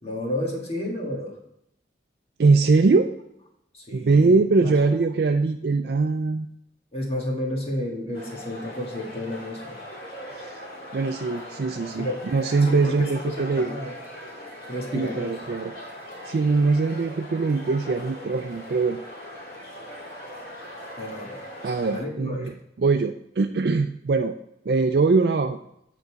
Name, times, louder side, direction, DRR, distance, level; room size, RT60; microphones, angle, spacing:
voice 1, 0.0-1.4 3.7-4.8 6.9-9.8 12.0-12.3 12.5-13.9 14.7-15.3 21.0-21.4 21.9-22.5, left 1 dB, 35° left, -2 dB, 1.7 m, -31 dB
voice 2, 2.4-3.1 3.9-6.5 10.4-10.5 10.9-13.7 14.9-15.7 16.3-19.0 21.6-24.3 24.7-25.6, right 4 dB, 60° right, 5 dB, 0.4 m, -22 dB
sound 1, 8.1-22.0, left 1 dB, 55° left, 2.5 m, -40 dB
8.9 x 4.1 x 4.7 m, 0.78 s
head